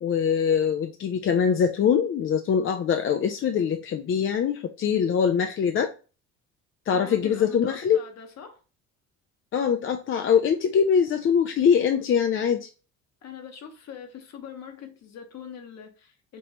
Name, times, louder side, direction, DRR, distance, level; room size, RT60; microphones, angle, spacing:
voice 1, 0.0-5.9 6.9-8.0 9.5-12.7, left 7 dB, 40° left, 0.5 m, -23 dB
voice 2, 6.9-8.6 13.2-16.4, left 7 dB, 55° left, 1.3 m, -43 dB
5.3 x 3.0 x 2.9 m
cardioid pair, 110°, 31 cm